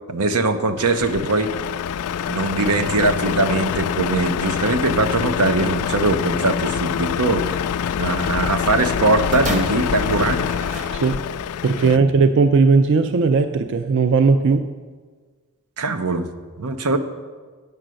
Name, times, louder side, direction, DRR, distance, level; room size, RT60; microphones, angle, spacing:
voice 1, 0.1-1.5 2.3-7.6 8.0-10.6 11.8-12.2 15.8-16.3 16.6-17.0, right 3 dB, 90° right, 9 dB, 0.7 m, -21 dB
Truck, 0.8-12.0, left 8 dB, 80° left, 0.3 m, -25 dB
sound 1, 9.3-11.6 12.4-12.5, right 1 dB, 35° right, 1.1 m, -32 dB
voice 2, 11.6-14.7, right 4 dB, 55° right, 10 dB, 0.4 m, -17 dB
8.9 x 6.7 x 6.3 m, 1.5 s
head